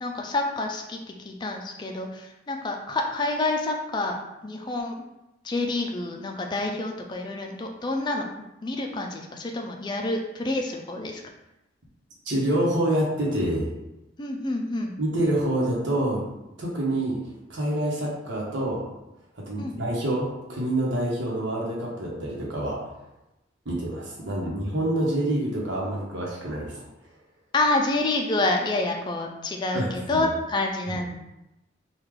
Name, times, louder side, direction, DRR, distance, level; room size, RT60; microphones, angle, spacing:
voice 1, 0.0-5.1 5.4-8.3 8.6-11.2 14.2-14.9 19.6-19.7 24.2-24.6 27.5-31.2, left 2 dB, 25° left, 2 dB, 0.4 m, -28 dB
voice 2, 12.3-13.7 15.0-16.2 16.6-17.2 17.5-18.8 19.5-22.8 23.6-26.7 29.7-30.2, right 1 dB, 85° right, -3 dB, 1.0 m, -26 dB
3.1 x 2.3 x 3.6 m, 0.92 s
head